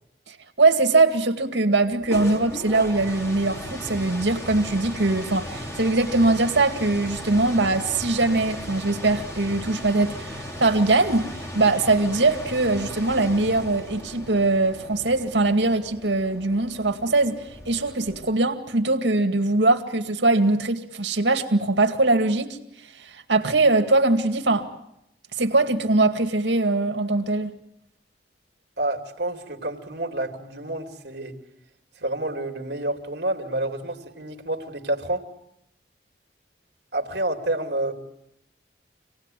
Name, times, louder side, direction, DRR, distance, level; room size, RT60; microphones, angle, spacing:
voice 1, 0.3-11.3 11.5-22.6 23.0-24.7 25.4-27.5, right 2 dB, 85° right, 2.2 m, -22 dB
sound 1, 1.8-18.5, equal, 15° left, 2.7 m, -37 dB
voice 2, 28.8-31.4 32.0-35.3 36.9-37.9, right 1 dB, 70° right, 2.7 m, -29 dB
26.5 x 18.5 x 9.2 m
head